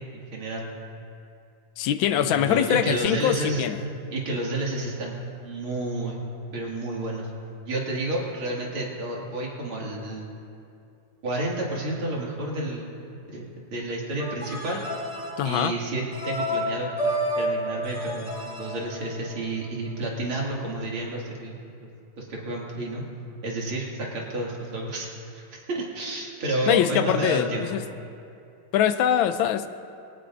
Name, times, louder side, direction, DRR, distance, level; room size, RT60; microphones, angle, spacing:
voice 1, 0.1-0.7 2.1-3.6 4.1-5.1 5.4-6.2 6.5-7.3 7.7-10.3 11.2-13.0 13.3-14.8 15.4-21.6 22.2-23.0 23.4-27.7, right 1 dB, 90° right, -3 dB, 3.0 m, -30 dB
voice 2, 1.8-3.8 15.4-15.7 26.7-27.8 28.7-29.7, left 10 dB, 75° left, 11 dB, 1.3 m, -23 dB
sound 1, 14.2-19.6, equal, 55° right, 3.4 m, -30 dB
22.5 x 17.0 x 2.6 m, 2.5 s
omnidirectional pair, 2.2 m